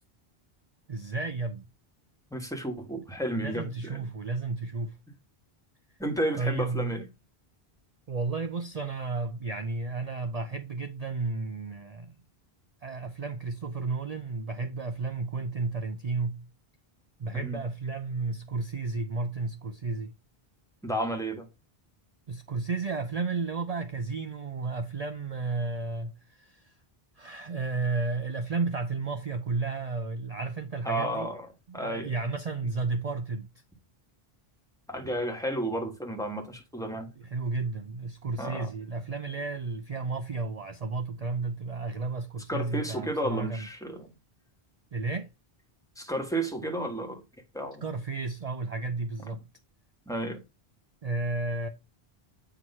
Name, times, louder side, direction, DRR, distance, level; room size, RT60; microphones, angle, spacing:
voice 1, 0.9-1.7 3.4-5.0 6.4-7.0 8.1-12.1 12.8-16.5 17.2-20.1 22.3-26.7 27.2-31.3 31.7-33.5 37.2-43.7 44.9-45.3 47.8-49.4 51.0-51.7, right 3 dB, 45° right, 0.5 m, -32 dB
voice 2, 2.3-4.0 6.0-7.0 17.4-17.6 20.8-21.4 30.8-31.5 31.7-32.1 34.9-37.1 38.4-38.7 42.5-44.1 46.0-47.2 47.5-47.8 50.1-50.4, right 1 dB, 5° left, 1.4 m, -32 dB
8.0 x 3.0 x 5.4 m
omnidirectional pair, 1.0 m